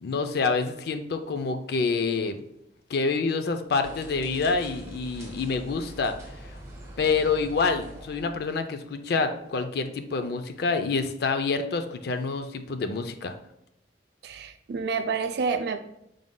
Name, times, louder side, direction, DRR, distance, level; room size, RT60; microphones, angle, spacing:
voice 1, 0.0-2.4 2.9-6.2 7.0-13.3, left 4 dB, 60° left, 8 dB, 0.4 m, -27 dB
sound 1, 3.8-8.5, right 1 dB, 15° right, 1.1 m, -43 dB
voice 2, 14.2-15.8, right 5 dB, 60° right, 8 dB, 0.4 m, -29 dB
4.9 x 3.7 x 2.2 m, 0.78 s
head